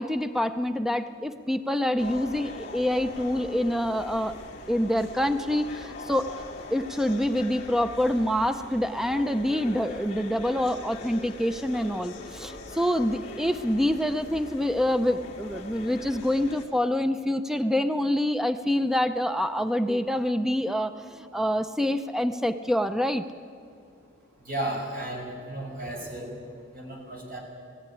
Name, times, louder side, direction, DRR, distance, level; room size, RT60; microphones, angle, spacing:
voice 1, 0.0-4.3 4.7-6.3 6.7-23.2, left 1 dB, ahead, 9 dB, 0.5 m, -26 dB
sound 1, 2.0-16.7, left 2 dB, 35° left, 2.9 m, -42 dB
voice 2, 24.5-26.3 26.7-27.4, right 1 dB, 50° right, 0 dB, 5.4 m, -34 dB
18.5 x 15.5 x 10.0 m, 2.4 s
head